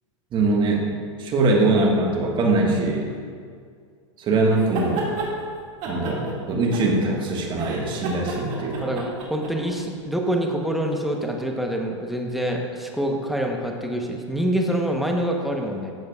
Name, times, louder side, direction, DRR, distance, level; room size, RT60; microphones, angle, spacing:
voice 1, 0.3-0.9 1.2-3.1 4.2-5.1 5.8-8.9, right 2 dB, 30° right, 0 dB, 1.6 m, -22 dB
sound 1, 4.6-5.3 5.8-7.2 7.5-9.7, right 3 dB, 45° right, 2.1 m, -32 dB
voice 2, 8.8-15.9, right 1 dB, ahead, 1 dB, 1.0 m, -26 dB
12.0 x 7.7 x 2.4 m, 2.1 s
hypercardioid pair, 110°, 16 cm